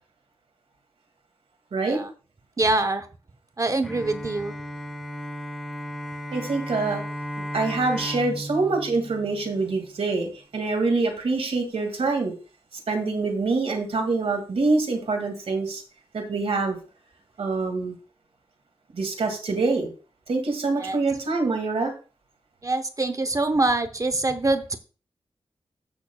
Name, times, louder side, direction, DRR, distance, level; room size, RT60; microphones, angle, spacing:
voice 1, 2.6-3.1 3.6-4.5 20.8-21.0 22.6-24.8, right 2 dB, 35° right, 8 dB, 0.8 m, -24 dB
Bowed string instrument, 3.8-10.0, equal, ahead, 2.0 m, -35 dB
voice 2, 6.3-7.0 7.5-12.3 12.9-15.8 16.1-16.8 17.4-18.0 18.9-19.9 20.3-21.9, right 3 dB, 80° right, 4 dB, 2.2 m, -25 dB
15.0 x 6.3 x 2.3 m, 0.35 s
wide cardioid pair, 80°, 10 cm